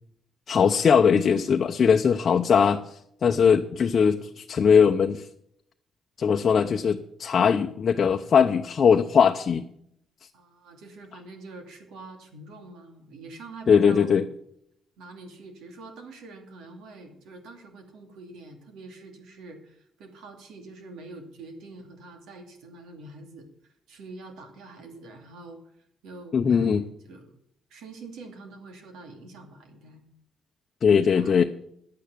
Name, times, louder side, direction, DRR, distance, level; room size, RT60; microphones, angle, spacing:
voice 1, 0.5-2.8 3.2-5.2 6.2-9.6 13.7-14.2 26.3-26.8 30.8-31.4, left 6 dB, 50° left, 5 dB, 0.7 m, -20 dB
voice 2, 10.3-14.2 15.0-23.5 23.9-25.6 26.0-27.3 27.7-30.1 31.1-31.3, right 3 dB, 85° right, 4 dB, 2.5 m, -45 dB
10.5 x 8.9 x 6.7 m, 0.72 s
cardioid pair, 90°, 0 cm